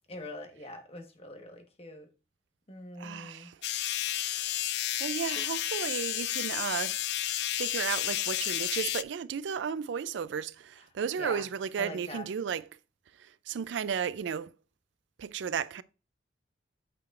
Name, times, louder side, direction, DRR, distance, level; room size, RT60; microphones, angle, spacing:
voice 1, 0.1-2.1 2.7-3.5 11.2-11.5 11.8-12.3, left 1 dB, 35° left, 1.3 m, -43 dB
voice 2, 3.0-3.6 5.0-7.0 7.6-12.7 13.2-14.5 15.2-15.8, right 7 dB, 85° right, 0.4 m, -34 dB
sound 1, 3.6-9.0, left 13 dB, 65° left, 0.4 m, -31 dB
8.8 x 6.4 x 2.5 m
head